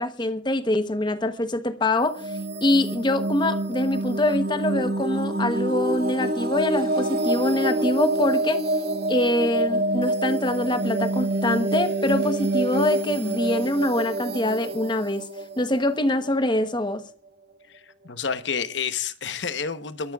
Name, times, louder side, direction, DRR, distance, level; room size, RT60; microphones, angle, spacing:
voice 1, 0.0-2.3 2.6-8.6 9.1-15.2 15.6-17.0, left 1 dB, 25° left, 1.0 m, -24 dB
sound 1, 2.0-16.7, right 2 dB, 55° right, 1.3 m, -27 dB
voice 2, 17.7-20.1, left 6 dB, 75° left, 1.0 m, -30 dB
28.5 x 13.0 x 2.4 m
head